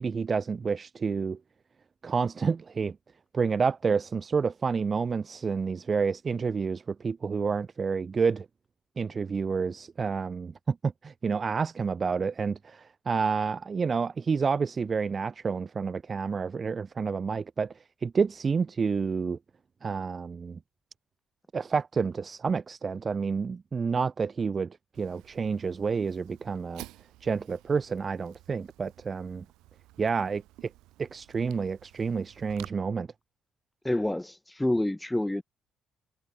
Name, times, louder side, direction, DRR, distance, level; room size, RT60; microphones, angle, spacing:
voice 1, 0.0-1.4 2.0-3.0 3.3-8.5 9.0-17.7 18.0-19.4 19.8-20.6 21.5-26.8 27.2-29.4 30.0-30.4 31.0-33.1, right 5 dB, 40° right, 2.0 m, -29 dB
Fire, 24.9-32.7, right 18 dB, 90° right, 7.8 m, -52 dB
voice 2, 33.8-35.4, left 1 dB, 10° left, 0.5 m, -28 dB
supercardioid pair, 75°, 0 cm